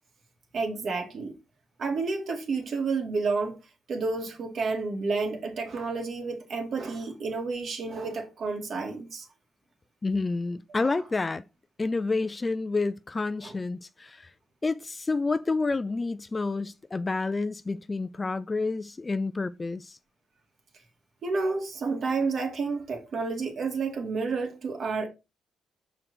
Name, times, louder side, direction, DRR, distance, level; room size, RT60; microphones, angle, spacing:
voice 1, 0.5-1.3 1.8-3.6 3.9-9.3 10.7-10.9 13.4-13.5 21.2-25.1, right 4 dB, 55° right, 2.0 m, -30 dB
voice 2, 10.0-11.4 11.8-14.3 14.6-20.0, left 3 dB, 25° left, 0.3 m, -29 dB
6.4 x 4.5 x 3.8 m
cardioid pair, 105°, 0 cm